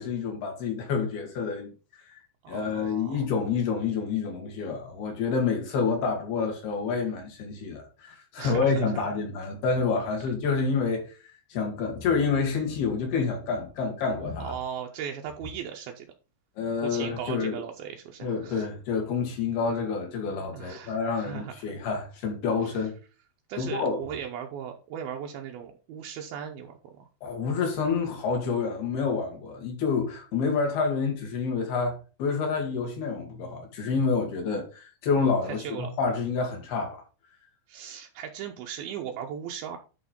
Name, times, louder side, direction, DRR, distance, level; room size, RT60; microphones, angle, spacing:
voice 1, 0.0-1.7 2.1-2.2 2.5-11.1 11.5-14.5 16.6-17.6 18.2-22.9 23.6-24.0 27.2-37.0, left 5 dB, 60° left, 4.0 m, -28 dB
voice 2, 2.4-3.2 8.4-9.1 14.4-16.1 16.8-18.7 20.5-21.8 23.5-27.0 35.4-35.9 37.7-39.8, right 8 dB, 85° right, 2.1 m, -38 dB
11.0 x 3.8 x 5.2 m
omnidirectional pair, 5.4 m